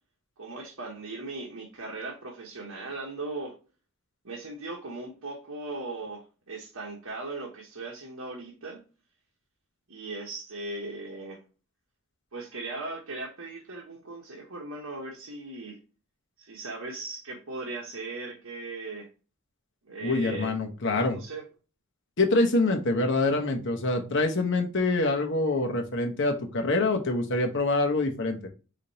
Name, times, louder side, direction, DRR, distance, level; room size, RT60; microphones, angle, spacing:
voice 1, 0.4-3.6 4.2-8.8 9.9-11.4 12.3-15.8 16.4-19.1 19.8-20.6 21.0-21.4, right 2 dB, 80° right, -2 dB, 1.2 m, -38 dB
voice 2, 20.0-21.2 22.2-28.4, left 2 dB, 60° left, 3 dB, 1.1 m, -25 dB
5.0 x 3.6 x 2.8 m, 0.33 s
head